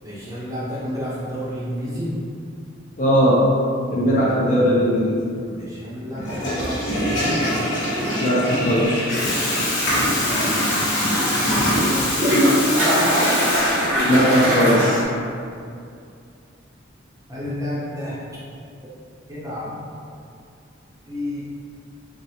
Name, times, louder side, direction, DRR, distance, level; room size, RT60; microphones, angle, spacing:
voice 1, 0.0-2.1 5.4-7.5 10.4-10.9 11.7-13.1 17.3-18.5 19.3-19.7 21.1-21.4, equal, 15° right, -8 dB, 0.6 m, -31 dB
voice 2, 3.0-3.4 3.9-5.2 8.2-9.0 14.1-15.0, equal, 40° left, -5 dB, 0.5 m, -18 dB
Water tap faucet / Toilet flush, 6.1-14.2, left 1 dB, 75° left, 1.1 m, -23 dB
sound 1, 7.5-15.0, equal, 90° right, 0.9 m, -23 dB
3.9 x 2.1 x 2.7 m, 2.4 s
head